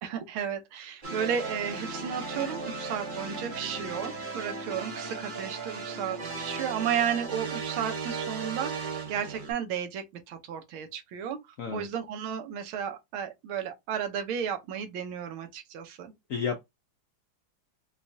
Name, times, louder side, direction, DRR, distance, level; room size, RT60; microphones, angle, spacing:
voice 1, 0.0-11.4 11.7-16.1, right 8 dB, 85° right, 1.6 m, -33 dB
sound 1, 1.0-9.5, right 4 dB, 50° right, 0.6 m, -36 dB
voice 2, 16.3-16.6, left 6 dB, 80° left, 0.7 m, -31 dB
5.0 x 2.3 x 2.6 m
omnidirectional pair, 2.2 m